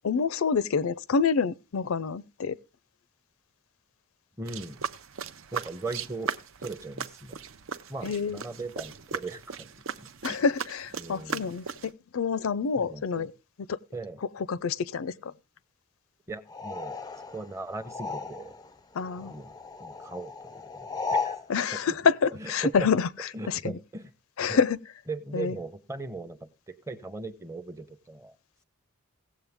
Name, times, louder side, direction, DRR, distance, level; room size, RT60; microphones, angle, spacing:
voice 1, 0.0-2.6 8.0-8.4 10.2-13.3 13.7-13.8 14.4-15.3 18.9-19.3 21.5-23.1 23.5-23.8 24.4-24.8 25.3-25.5, left 5 dB, 80° left, 0.5 m, -27 dB
voice 2, 4.4-4.8 5.5-6.3 6.6-7.4 7.9-10.4 11.0-11.5 12.8-13.3 13.9-14.2 16.3-17.0 17.3-18.6 19.2-19.5 19.8-21.4 21.7-21.9 22.3-22.9 23.3-24.1 24.5-24.6 25.1-28.4, right 3 dB, 15° right, 0.7 m, -39 dB
sound 1, 4.5-11.9, right 6 dB, 70° right, 0.6 m, -38 dB
sound 2, 16.5-18.7 19.0-21.5, left 4 dB, 20° left, 0.4 m, -35 dB
17.0 x 7.5 x 3.5 m
head